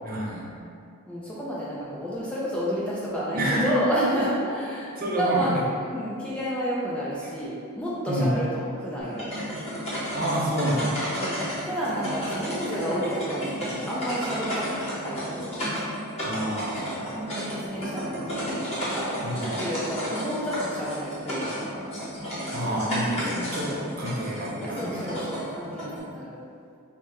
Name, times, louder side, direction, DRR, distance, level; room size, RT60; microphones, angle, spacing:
voice 1, 0.0-0.5 3.3-4.3 5.0-5.5 8.1-8.3 10.1-11.2 16.2-17.1 19.2-19.6 22.5-25.1, equal, 40° right, -5 dB, 0.6 m, -28 dB
voice 2, 1.1-5.6 5.9-9.3 11.2-15.5 17.0-21.9 24.6-26.4, equal, 5° left, -8 dB, 0.4 m, -31 dB
sound 1, 9.0-26.0, equal, 30° left, 1.1 m, -32 dB
5.2 x 2.1 x 3.1 m, 2.4 s
head